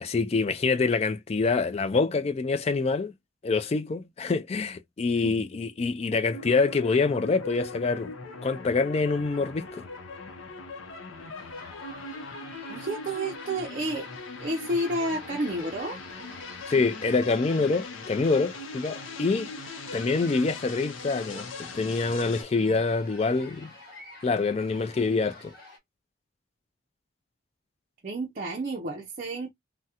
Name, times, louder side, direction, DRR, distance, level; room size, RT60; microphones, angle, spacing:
voice 1, 0.0-3.1 3.4-8.1 8.4-9.8 16.7-19.5 19.9-23.7 24.2-25.5, left 4 dB, 30° left, 0.3 m, -26 dB
sound 1, 6.3-22.4, left 3 dB, 70° left, 0.7 m, -40 dB
sound 2, 11.3-25.8, left 1 dB, 45° left, 1.4 m, -50 dB
voice 2, 12.7-14.1 14.4-16.0 28.0-29.5, right 1 dB, 40° right, 0.5 m, -30 dB
3.5 x 2.1 x 2.7 m
head